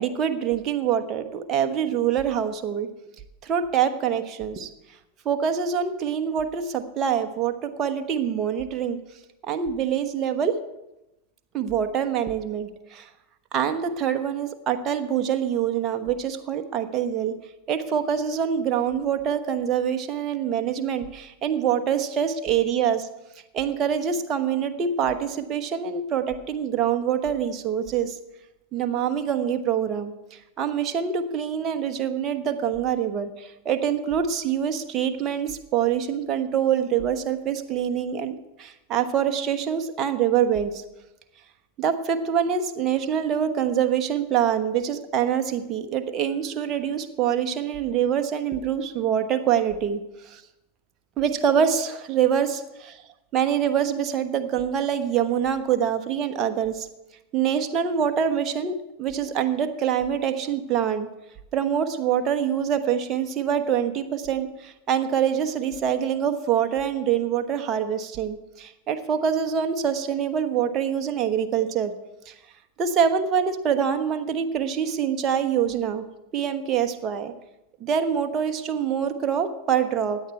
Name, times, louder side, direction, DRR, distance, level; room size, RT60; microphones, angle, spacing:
voice 1, 0.0-2.9 3.4-4.7 5.2-9.0 9.4-10.6 11.5-13.1 13.5-17.4 17.7-23.1 23.5-28.1 28.7-40.8 41.8-50.0 51.2-53.0 53.3-56.9 57.3-61.1 61.5-71.9 72.3-72.4 72.8-76.0 76.3-77.3 77.8-80.2, right 8 dB, 30° right, 7 dB, 1.1 m, -25 dB
16.0 x 10.0 x 4.6 m, 0.94 s
figure-of-eight pair, 90°, 0 cm